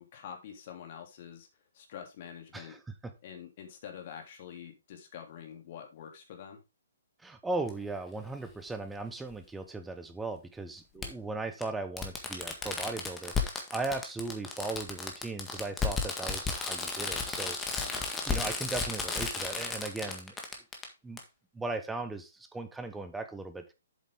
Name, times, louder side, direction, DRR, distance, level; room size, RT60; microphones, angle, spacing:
voice 1, 0.0-1.5 1.7-2.7 3.2-6.6 10.9-11.2 17.8-18.1, left 8 dB, 45° left, 3 dB, 2.9 m, -46 dB
voice 2, 2.5-3.1 7.2-17.7 18.3-20.3 21.0-21.2 21.5-23.6, right 3 dB, 5° right, 8 dB, 1.1 m, -37 dB
Fireworks, 7.7-7.8 9.3-9.4 11.0-11.1 11.6-11.7 12.0-20.8 21.2-21.3, left 4 dB, 10° left, 1.7 m, -33 dB
8.2 x 7.3 x 3.7 m, 0.25 s
figure-of-eight pair, 135°, 0 cm